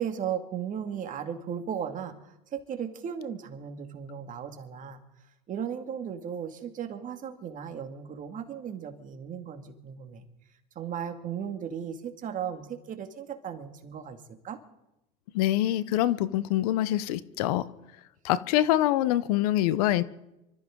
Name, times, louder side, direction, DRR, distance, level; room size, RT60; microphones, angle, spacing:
voice 1, 0.0-5.0 5.5-10.2 10.8-14.6, right 8 dB, 45° right, 6 dB, 2.2 m, -36 dB
voice 2, 15.3-17.7 18.2-20.0, left 13 dB, 85° left, 17 dB, 0.8 m, -25 dB
25.0 x 14.0 x 3.8 m, 0.89 s
supercardioid pair, 95°, 19 cm